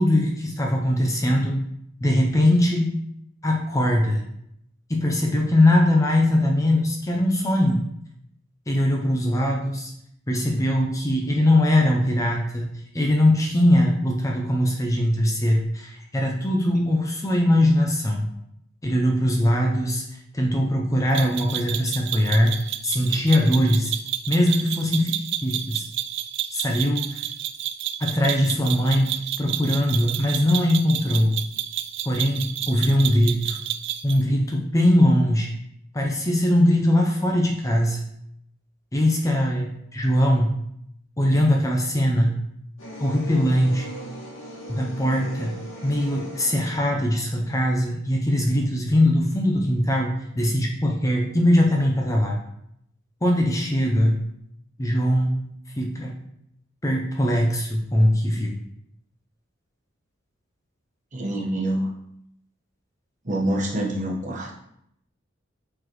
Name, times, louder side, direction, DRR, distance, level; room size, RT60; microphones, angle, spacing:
voice 1, 0.0-1.7 2.0-3.0 3.4-4.2 4.9-7.9 8.7-9.9 10.3-18.3 18.8-23.9 24.3-25.8 26.5-27.2 28.0-31.4 32.1-33.6 34.0-35.5 35.9-38.0 38.9-40.6 41.2-42.4 43.0-43.9 44.7-52.4 53.2-54.2 54.8-55.5 55.8-56.2 56.8-58.6, left 1 dB, 15° left, 0 dB, 0.6 m, -21 dB
sound 1, 21.1-34.2, right 12 dB, 60° right, 0.4 m, -30 dB
sound 2, 42.8-47.7, right 1 dB, 85° left, 1.8 m, -39 dB
voice 2, 61.1-61.9 63.2-64.5, right 1 dB, 40° right, -2 dB, 1.2 m, -26 dB
7.6 x 4.0 x 3.0 m, 0.75 s
head